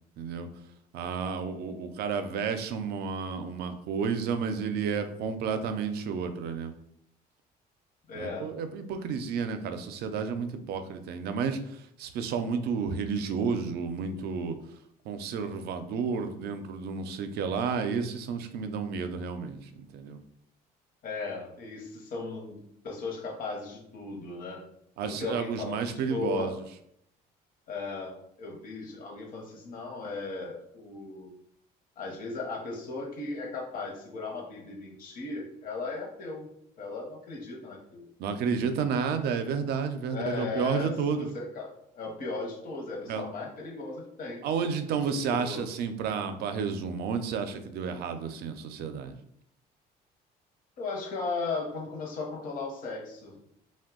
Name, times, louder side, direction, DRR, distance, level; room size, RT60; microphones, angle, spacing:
voice 1, 0.2-0.5 0.9-6.7 8.1-14.6 15.1-20.2 25.0-26.5 38.2-41.3 43.1-43.3 44.4-49.2, right 6 dB, 70° right, 8 dB, 0.4 m, -31 dB
voice 2, 8.1-8.5 21.0-24.6 25.0-26.6 27.7-31.3 32.0-36.5 36.8-38.0 40.1-44.4 45.2-45.7 50.8-53.4, left 3 dB, 55° left, -1 dB, 0.8 m, -36 dB
2.6 x 2.2 x 3.6 m, 0.72 s
cardioid pair, 110°, 17 cm